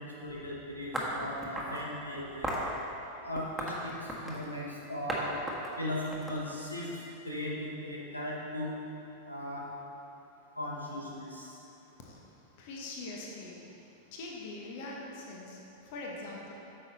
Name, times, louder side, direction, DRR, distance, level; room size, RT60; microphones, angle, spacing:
voice 1, 0.0-2.5 3.2-5.4 5.8-6.9 7.2-8.7 9.2-9.7 10.6-11.6, left 1 dB, 85° left, -4 dB, 1.3 m, -38 dB
sound 1, 0.9-1.8 2.4-2.7 3.4-4.5 5.1-5.2 5.5-6.9, right 1 dB, 5° right, 1.4 m, -35 dB
voice 2, 12.6-13.6 14.1-16.5, left 2 dB, 50° left, -2 dB, 1.2 m, -42 dB
9.2 x 6.6 x 4.0 m, 2.9 s
figure-of-eight pair, 90°, 0 cm